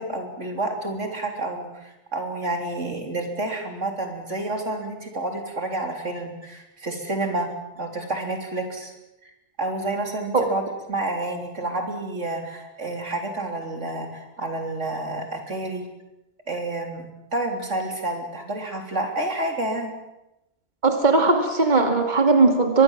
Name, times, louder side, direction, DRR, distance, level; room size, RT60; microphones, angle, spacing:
voice 1, 0.0-7.5 7.8-8.9 9.2-9.3 9.6-15.9 16.5-17.1 17.3-19.9, right 2 dB, 80° right, 3 dB, 3.9 m, -29 dB
voice 2, 20.8-22.8, right 3 dB, 40° right, 4 dB, 2.5 m, -18 dB
23.5 x 22.0 x 7.3 m, 0.94 s
omnidirectional pair, 1.2 m